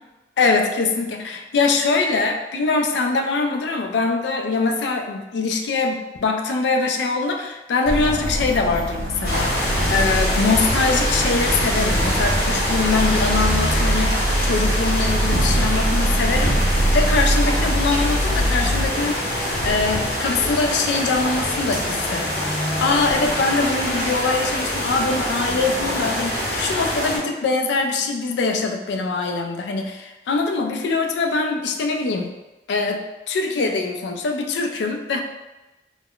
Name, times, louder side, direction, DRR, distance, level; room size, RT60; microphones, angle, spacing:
voice 1, 0.4-16.6 16.9-19.3 19.6-32.3 32.7-35.2, left 4 dB, 80° left, 4 dB, 0.3 m, -23 dB
sound 1, 7.9-18.9, right 1 dB, 55° right, 0.3 m, -23 dB
sound 2, 9.2-27.2, equal, 60° left, 0.8 m, -24 dB
2.3 x 2.1 x 3.5 m, 1.0 s
head